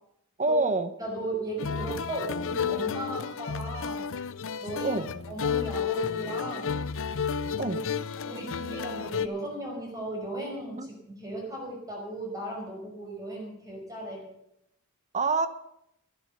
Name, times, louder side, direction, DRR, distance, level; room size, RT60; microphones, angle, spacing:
voice 1, 0.4-0.9 4.8-5.1 7.6-7.8 10.8-10.9 15.1-15.5, right 3 dB, 30° right, 11 dB, 0.9 m, -26 dB
voice 2, 1.0-4.1 4.6-5.0 5.3-6.9 7.6-7.8 8.2-14.2, right 1 dB, 15° right, -1 dB, 5.4 m, -36 dB
sound 1, 1.6-9.3, left 6 dB, 60° left, 0.6 m, -32 dB
12.5 x 11.0 x 6.7 m, 0.79 s
head